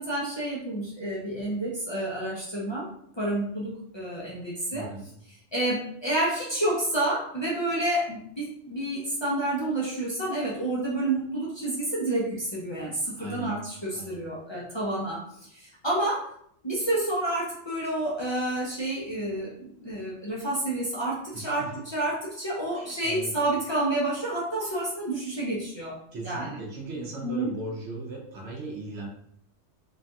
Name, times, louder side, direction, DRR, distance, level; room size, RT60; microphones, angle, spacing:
voice 1, 0.0-2.9 3.2-4.9 5.5-16.3 16.6-26.0 26.2-26.6 27.2-27.5, right 1 dB, 45° left, -6 dB, 0.3 m, -29 dB
voice 2, 4.7-5.0 13.2-13.6 13.9-14.2 21.3-21.7 22.7-23.3 24.6-24.8 26.1-29.1, right 2 dB, 65° right, -1 dB, 0.9 m, -38 dB
3.2 x 2.2 x 2.6 m, 0.67 s
omnidirectional pair, 1.3 m